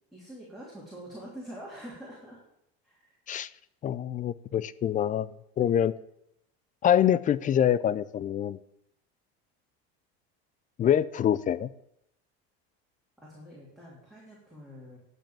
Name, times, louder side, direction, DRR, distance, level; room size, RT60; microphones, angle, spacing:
voice 1, 0.1-2.4 2.8-3.1 13.2-15.0, equal, ahead, 3.2 m, -45 dB
voice 2, 3.8-5.3 5.6-5.9 6.8-8.6 10.8-11.7, left 10 dB, 25° left, 0.3 m, -25 dB
11.0 x 5.4 x 7.1 m
supercardioid pair, 110°, 31 cm